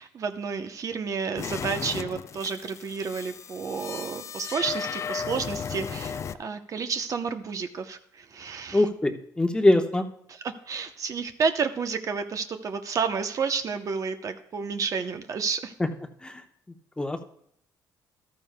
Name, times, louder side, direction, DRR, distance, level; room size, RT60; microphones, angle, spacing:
voice 1, 0.0-8.8 10.4-15.7, right 5 dB, 45° right, 8 dB, 0.7 m, -30 dB
sound 1, 1.4-6.3, left 7 dB, 40° left, 0.4 m, -35 dB
voice 2, 8.7-10.0 15.8-15.9 16.2-16.4 17.0-17.3, left 1 dB, 10° left, 5 dB, 1.0 m, -23 dB
14.0 x 13.0 x 2.2 m, 0.69 s
cardioid pair, 105°, 8 cm